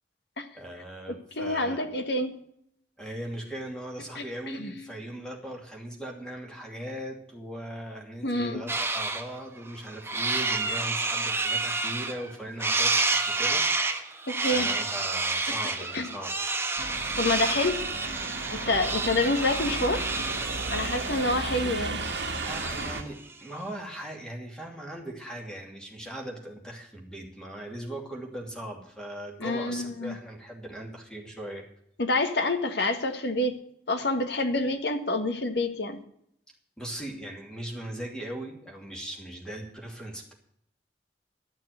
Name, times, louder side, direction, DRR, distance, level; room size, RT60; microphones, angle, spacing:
voice 1, 0.5-1.8 3.0-16.3 22.4-31.6 36.8-40.3, right 1 dB, 5° left, 0 dB, 2.6 m, -39 dB
voice 2, 1.1-2.4 4.1-4.7 8.2-8.6 14.3-14.7 15.9-16.1 17.2-17.8 18.5-20.1 20.7-22.0 29.4-30.1 32.0-33.5 33.9-36.0, left 2 dB, 70° left, 7 dB, 1.5 m, -27 dB
sound 1, 8.7-9.2 9.7-12.3 12.6-23.1, right 3 dB, 15° right, 1.2 m, -29 dB
sound 2, 16.8-23.0, right 3 dB, 70° right, 1.4 m, -35 dB
12.0 x 6.4 x 9.2 m, 0.70 s
head